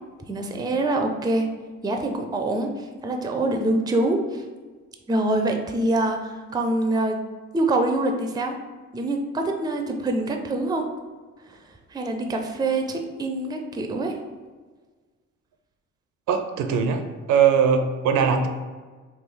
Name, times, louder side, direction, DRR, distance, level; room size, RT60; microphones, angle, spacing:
voice 1, 0.3-1.5 1.8-4.4 5.1-7.2 7.5-8.6 8.9-10.9 11.9-14.2, right 2 dB, 15° right, 4 dB, 0.4 m, -25 dB
voice 2, 16.3-17.0 17.3-18.5, right 7 dB, 75° right, 7 dB, 0.5 m, -20 dB
3.3 x 2.3 x 3.7 m, 1.4 s
cardioid pair, 90°, 30 cm